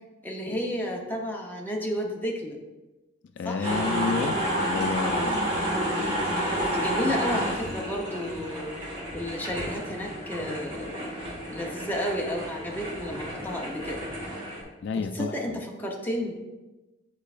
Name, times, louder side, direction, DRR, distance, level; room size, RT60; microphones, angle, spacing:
voice 1, 0.2-2.6 3.4-3.8 6.4-8.7 9.1-11.0 11.5-14.0 15.0-16.3, equal, 10° left, -1 dB, 0.7 m, -32 dB
voice 2, 3.4-5.4 14.8-15.6, left 4 dB, 60° left, 7 dB, 0.3 m, -30 dB
sound 1, 3.6-14.6, equal, 25° right, 1.8 m, -30 dB
9.1 x 4.5 x 2.5 m, 1.1 s
head